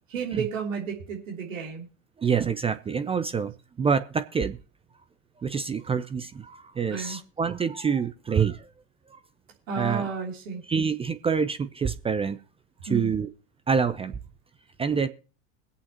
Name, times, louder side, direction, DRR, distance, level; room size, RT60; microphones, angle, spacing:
voice 1, 0.1-1.9 6.9-7.2 9.7-10.6 12.9-13.1, right 5 dB, 75° right, -1 dB, 3.3 m, -32 dB
voice 2, 2.2-4.6 5.4-8.7 9.1-9.2 9.8-10.0 10.7-12.4 12.9-13.3 13.7-14.1 14.8-15.1, right 6 dB, 15° right, 12 dB, 0.5 m, -26 dB
22.0 x 8.3 x 2.9 m, 0.36 s
hypercardioid pair, 95°, 40 cm